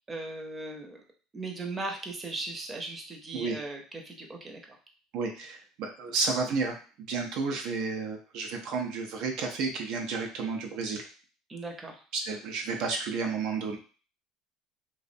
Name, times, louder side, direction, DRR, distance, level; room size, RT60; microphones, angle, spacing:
voice 1, 0.1-1.0 1.3-4.6 11.5-12.0, right 2 dB, 25° right, 2 dB, 0.6 m, -38 dB
voice 2, 5.1-6.7 7.1-11.0 12.1-13.8, right 4 dB, 65° right, 2 dB, 0.4 m, -31 dB
2.5 x 2.0 x 2.5 m, 0.39 s
supercardioid pair, 90°, 0 cm